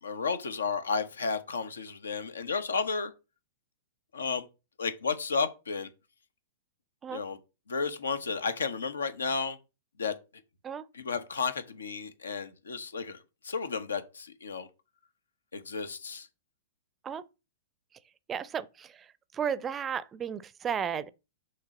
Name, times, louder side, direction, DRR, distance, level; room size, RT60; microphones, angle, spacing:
voice 1, 0.0-3.1 4.1-4.5 4.8-5.9 7.1-7.4 7.7-9.6 10.0-10.1 10.9-14.7 15.5-16.3, left 5 dB, 80° left, 1.1 m, -32 dB
voice 2, 18.3-18.9 19.3-21.1, right 7 dB, 20° right, 0.5 m, -33 dB
6.5 x 3.3 x 6.0 m
hypercardioid pair, 110°, 0 cm